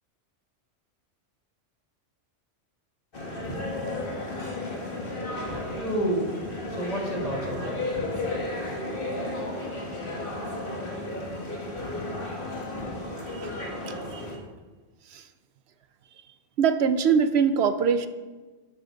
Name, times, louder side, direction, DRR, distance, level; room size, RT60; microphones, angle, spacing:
sound 1, 3.1-14.4, left 2 dB, 45° left, 1.9 m, -33 dB
voice 1, 5.3-10.8, right 1 dB, 30° left, -2 dB, 2.3 m, -34 dB
voice 2, 13.3-14.3 15.1-15.3 16.6-18.1, right 6 dB, 65° right, 11 dB, 0.9 m, -24 dB
12.0 x 9.5 x 3.9 m, 1.3 s
omnidirectional pair, 1.2 m